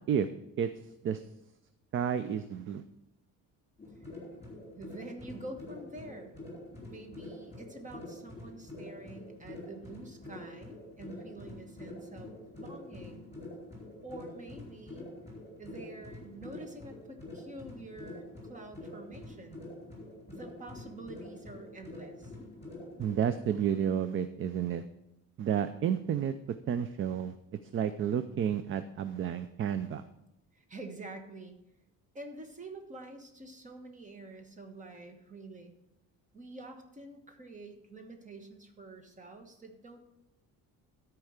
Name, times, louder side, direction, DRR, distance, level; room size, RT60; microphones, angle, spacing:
voice 1, 1.9-2.8 23.0-24.8 25.4-26.3 26.7-27.3 27.7-30.0, right 8 dB, 40° right, 11 dB, 0.4 m, -31 dB
sound 1, 3.8-23.2, left 1 dB, 20° left, 4.0 m, -46 dB
voice 2, 4.7-6.3 6.9-13.3 14.0-15.1 15.6-19.6 20.3-22.3 30.5-31.6 32.1-35.8 36.3-40.0, right 2 dB, 20° right, 5 dB, 1.2 m, -47 dB
13.0 x 4.6 x 6.4 m, 0.88 s
cardioid pair, 155°, 34 cm